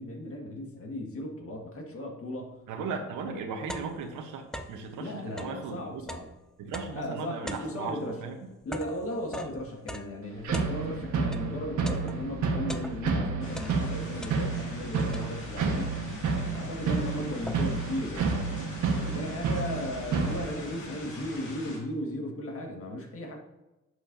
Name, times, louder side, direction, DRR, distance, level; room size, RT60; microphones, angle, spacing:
voice 1, 0.0-2.6 3.3-3.4 5.0-6.3 6.9-8.2 8.6-15.9 16.5-18.5 19.0-23.4, left 1 dB, 50° left, 2 dB, 1.8 m, -36 dB
voice 2, 2.7-6.1 6.6-8.5, right 5 dB, 90° right, 4 dB, 1.0 m, -37 dB
sound 1, 2.8-2.9 3.3-4.9 5.3-11.5 11.9-13.2 13.5-14.8 15.1-15.7 16.3-16.4 16.7-17.9, equal, ahead, 0.6 m, -42 dB
sound 2, 10.4-20.5, right 4 dB, 75° right, 1.4 m, -30 dB
sound 3, 13.4-21.8, left 1 dB, 85° left, 2.4 m, -44 dB
10.5 x 6.6 x 2.7 m, 1.0 s
cardioid pair, 90°, 30 cm